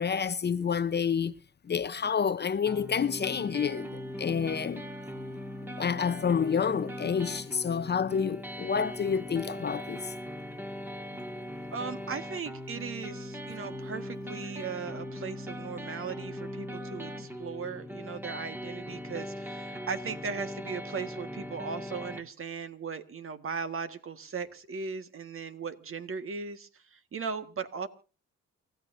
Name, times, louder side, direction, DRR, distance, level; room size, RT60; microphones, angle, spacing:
voice 1, 0.0-1.3 1.6-4.8 5.8-10.1, left 6 dB, 35° left, 0.7 m, -29 dB
sound 1, 2.7-22.2, equal, 5° right, 1.8 m, -40 dB
voice 2, 11.7-27.9, right 5 dB, 45° right, 1.6 m, -38 dB
29.0 x 14.5 x 2.6 m
cardioid pair, 90°, 30 cm